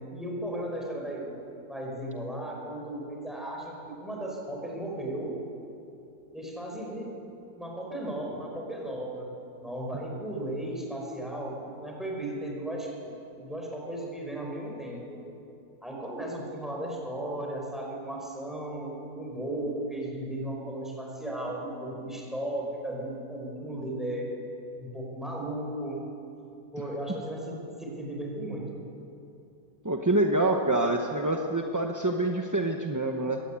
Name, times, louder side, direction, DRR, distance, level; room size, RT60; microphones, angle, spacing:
voice 1, 0.0-1.3 1.7-5.3 6.3-7.1 7.6-9.3 9.6-13.1 13.4-15.2 15.8-24.3 24.8-26.0 26.7-28.8, right 1 dB, ahead, -2 dB, 5.2 m, -35 dB
voice 2, 29.8-33.4, right 2 dB, 15° right, 2 dB, 0.7 m, -26 dB
22.0 x 17.5 x 8.8 m, 2.8 s
omnidirectional pair, 1.9 m